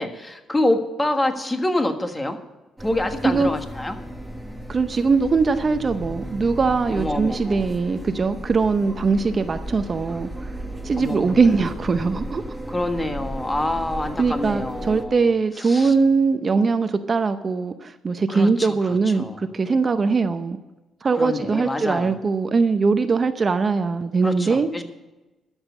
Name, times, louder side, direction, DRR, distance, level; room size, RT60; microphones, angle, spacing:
voice 1, 0.0-2.4 2.8-3.9 6.9-7.7 11.0-11.5 12.7-16.0 18.3-19.5 21.1-22.2 24.2-24.8, left 1 dB, 15° left, 6 dB, 1.5 m, -26 dB
sound 1, 2.8-15.1, right 1 dB, 5° right, 1.4 m, -34 dB
voice 2, 4.7-10.5 10.8-12.4 14.2-20.6 21.0-24.7, right 4 dB, 35° right, 9 dB, 0.7 m, -21 dB
13.0 x 7.3 x 8.1 m, 1.1 s
cardioid pair, 90°, 0 cm